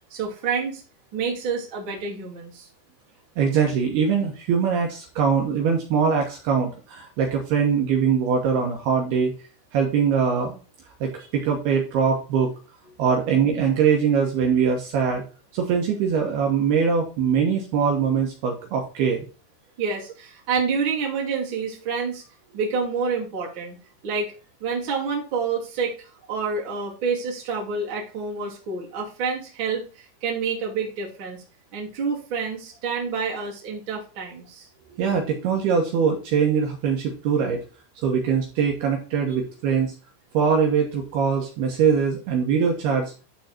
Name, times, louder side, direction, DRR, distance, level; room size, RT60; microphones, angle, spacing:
voice 1, 0.1-0.8 1.1-2.7 19.8-22.2 22.5-23.8 24.0-24.3 24.6-31.4 31.7-34.7, right 5 dB, 35° right, -2 dB, 2.6 m, -28 dB
voice 2, 3.4-9.3 9.7-10.6 11.0-12.5 13.0-15.2 15.5-19.2 35.0-37.6 38.0-39.9 40.3-43.1, right 6 dB, 70° right, 1 dB, 3.0 m, -22 dB
12.0 x 4.0 x 4.4 m, 0.34 s
omnidirectional pair, 5.3 m